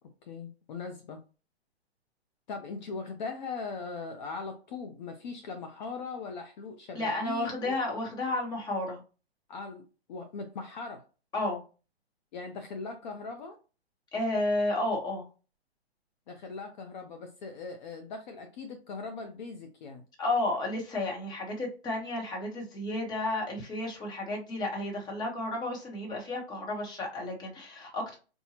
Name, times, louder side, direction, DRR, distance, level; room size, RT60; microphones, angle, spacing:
voice 1, 0.2-1.2 2.5-7.8 9.5-11.0 12.3-13.6 16.3-20.0, left 4 dB, 45° left, 6 dB, 0.7 m, -40 dB
voice 2, 6.9-9.0 11.3-11.6 14.1-15.2 20.2-28.2, left 2 dB, 10° left, -1 dB, 1.1 m, -32 dB
4.4 x 2.3 x 2.8 m, 0.33 s
hypercardioid pair, 135°, 33 cm